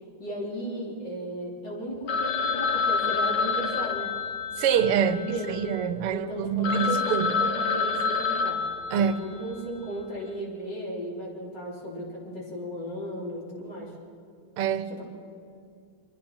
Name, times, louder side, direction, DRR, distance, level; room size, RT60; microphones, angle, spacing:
voice 1, 0.2-4.1 5.0-5.6 6.1-8.6 8.9-13.9 14.9-15.0, right 1 dB, 50° left, 4.1 m, -35 dB
Telephone, 2.1-5.9 6.3-6.4 6.6-9.5, left 5 dB, 75° left, 2.1 m, -28 dB
voice 2, 4.6-7.5 8.9-9.3 14.6-14.9, right 7 dB, 85° right, 1.7 m, -26 dB
25.5 x 23.5 x 4.4 m
omnidirectional pair, 2.4 m